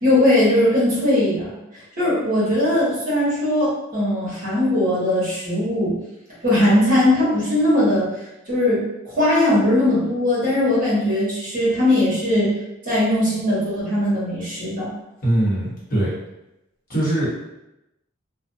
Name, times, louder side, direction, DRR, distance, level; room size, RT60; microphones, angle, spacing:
voice 1, 0.0-1.6 2.0-5.9 6.4-8.1 8.5-12.5 12.8-14.9, left 1 dB, 45° right, -8 dB, 1.2 m, -19 dB
voice 2, 15.2-16.1 16.9-17.3, right 1 dB, 45° left, -8 dB, 1.1 m, -21 dB
2.6 x 2.2 x 2.7 m, 0.92 s
head